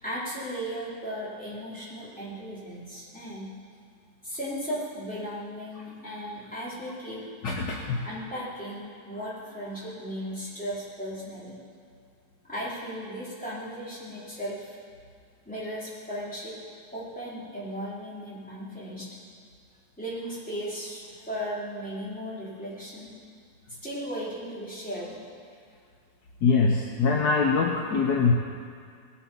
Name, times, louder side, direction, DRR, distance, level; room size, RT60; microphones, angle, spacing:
voice 1, 0.0-3.5 4.2-7.2 8.0-11.5 12.4-14.8 15.5-16.6 16.9-19.1 20.0-23.1 23.8-25.2, equal, 5° left, -9 dB, 3.7 m, -36 dB
voice 2, 7.4-8.0 26.4-28.3, left 4 dB, 65° left, 0 dB, 1.4 m, -23 dB
19.5 x 7.2 x 5.6 m, 2.2 s
omnidirectional pair, 1.9 m